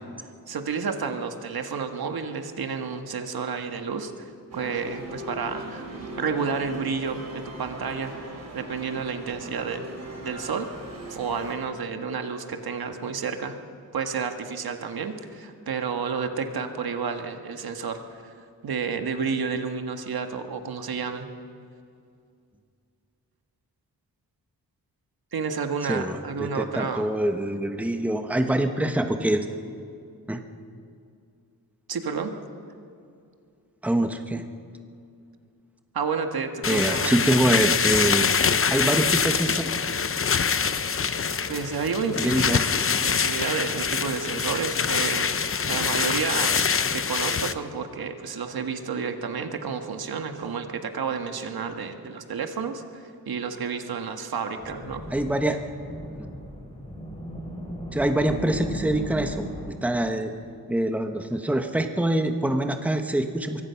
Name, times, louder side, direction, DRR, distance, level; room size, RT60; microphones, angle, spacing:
voice 1, 0.5-5.9 6.2-9.9 10.2-10.7 11.1-13.6 13.9-18.3 18.6-21.3 25.3-27.1 31.9-32.3 35.9-37.2 41.5-42.6 43.0-46.6 46.9-55.0, right 5 dB, 80° right, 6 dB, 1.7 m, -30 dB
sound 1, 4.5-11.6, right 1 dB, 45° right, 4.6 m, -39 dB
voice 2, 25.8-29.4 30.3-30.4 33.8-34.5 36.6-38.3 38.7-39.7 42.2-42.7 55.1-55.6 56.2-56.3 57.9-60.3 60.7-63.6, right 1 dB, 5° right, 6 dB, 1.0 m, -25 dB
sound 2, 36.6-47.5, left 6 dB, 35° left, 0.7 m, -24 dB
sound 3, 54.6-59.7, equal, 15° left, 4.2 m, -37 dB
24.5 x 23.5 x 5.8 m, 2.4 s
wide cardioid pair, 160°, 36 cm